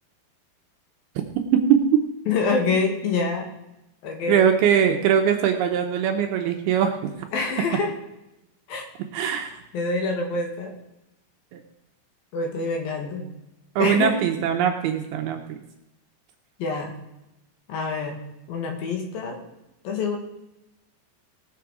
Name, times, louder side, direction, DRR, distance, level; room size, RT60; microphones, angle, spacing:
voice 1, 1.5-2.0 4.3-7.3 9.1-9.6 11.5-11.6 13.8-15.6, right 8 dB, 75° right, 4 dB, 2.5 m, -21 dB
voice 2, 2.3-3.5 4.0-4.5 7.3-7.9 8.7-8.9 9.7-10.7 12.3-13.3 13.8-14.2 16.6-16.9 17.7-18.2 18.5-19.4 19.8-20.2, left 4 dB, 65° left, 3 dB, 2.9 m, -26 dB
19.0 x 7.0 x 4.8 m, 0.93 s
omnidirectional pair, 5.1 m